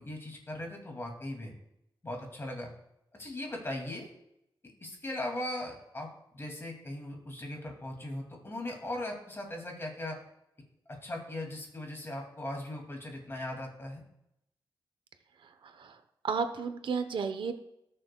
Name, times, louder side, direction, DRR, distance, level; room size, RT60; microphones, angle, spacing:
voice 1, 0.0-1.5 2.0-2.7 3.1-4.1 4.8-6.1 6.3-10.2 10.9-14.0, left 1 dB, 30° left, 1 dB, 2.3 m, -39 dB
voice 2, 15.6-16.0 16.2-17.5, right 5 dB, 85° right, 9 dB, 0.8 m, -32 dB
17.5 x 6.7 x 2.3 m, 0.83 s
wide cardioid pair, 125°, 8 cm